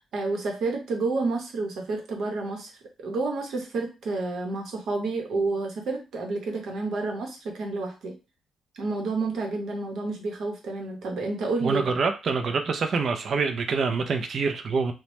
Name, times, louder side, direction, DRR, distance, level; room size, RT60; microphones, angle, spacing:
voice 1, 0.1-2.7 3.0-8.1 8.7-11.9, right 3 dB, 70° right, 0.9 m, -29 dB
voice 2, 11.6-14.9, right 4 dB, 55° right, 0.4 m, -26 dB
2.9 x 2.1 x 3.0 m
cardioid pair, 90°, 0 cm